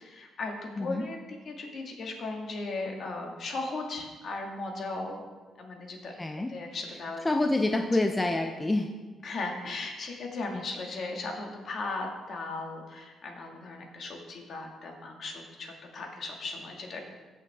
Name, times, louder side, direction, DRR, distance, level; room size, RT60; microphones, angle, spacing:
voice 1, 0.0-5.2 5.6-6.2 6.5-7.3 9.2-17.2, left 3 dB, 55° left, 1 dB, 1.9 m, -37 dB
voice 2, 6.2-6.5 7.2-8.9, left 2 dB, 15° left, 5 dB, 0.6 m, -27 dB
16.0 x 6.0 x 3.5 m, 1.3 s
cardioid pair, 90°, 0 cm